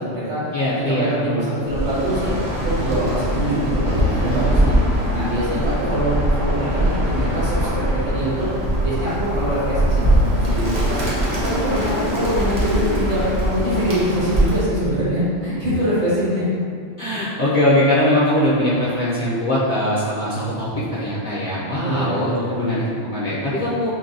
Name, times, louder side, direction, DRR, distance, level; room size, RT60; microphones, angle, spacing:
voice 1, 0.0-0.4 0.9-2.4 2.6-4.8 5.1-8.5 8.8-11.1 11.4-16.5 21.7-22.8, equal, 60° right, -10 dB, 1.7 m, -24 dB
voice 2, 0.5-1.5 17.0-23.9, left 1 dB, 50° left, -9 dB, 0.6 m, -21 dB
Bird, 1.6-14.7, equal, 40° right, 1.0 m, -21 dB
5.9 x 2.2 x 2.7 m, 2.2 s
omnidirectional pair, 1.3 m